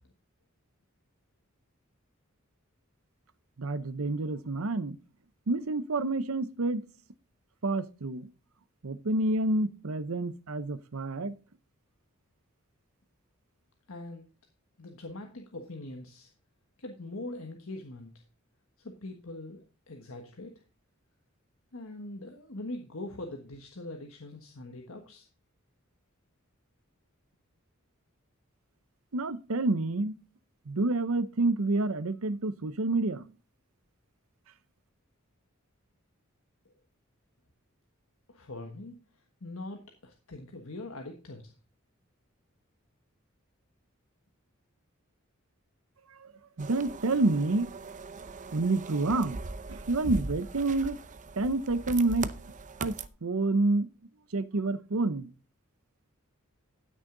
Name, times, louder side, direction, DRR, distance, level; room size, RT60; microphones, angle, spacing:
voice 1, 3.6-5.0 5.5-6.8 7.6-8.3 8.8-11.3 29.1-30.1 30.7-33.2 46.1-46.3 46.6-47.7 48.5-49.4 49.7-51.0 51.4-52.3 52.8-53.9 54.3-55.3, right 2 dB, 85° right, 0.8 m, -28 dB
voice 2, 13.9-14.3 14.8-16.3 16.8-18.1 18.8-20.5 21.7-25.3 38.3-41.4, left 2 dB, 75° left, 1.4 m, -42 dB
sound 1, 46.6-53.1, right 3 dB, 35° right, 0.7 m, -40 dB
13.0 x 6.4 x 3.9 m
head